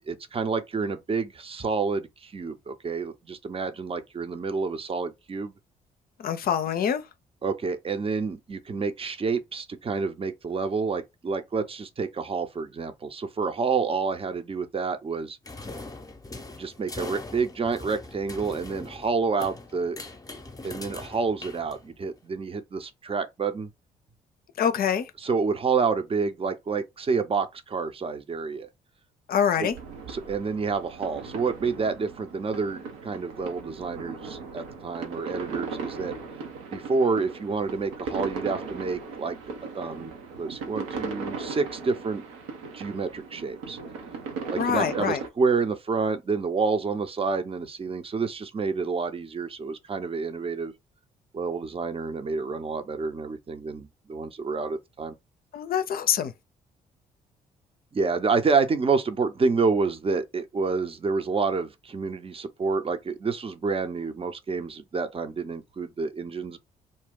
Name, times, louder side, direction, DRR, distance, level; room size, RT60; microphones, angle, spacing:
voice 1, 0.0-5.5 7.4-15.4 16.5-20.0 20.6-23.7 25.2-28.7 29.6-29.7 30.1-36.1 36.7-39.4 39.7-42.2 42.7-43.8 44.5-50.7 51.3-55.1 57.9-66.6, right 4 dB, 30° right, 0.7 m, -28 dB
voice 2, 6.2-7.0 24.6-25.1 29.3-29.7 44.6-45.2 55.5-56.3, left 8 dB, 50° left, 0.5 m, -25 dB
sound 1, 15.4-22.2, left 2 dB, 20° left, 0.7 m, -41 dB
sound 2, 29.5-45.3, right 4 dB, 75° right, 0.7 m, -38 dB
2.6 x 2.2 x 3.6 m
hypercardioid pair, 45°, 19 cm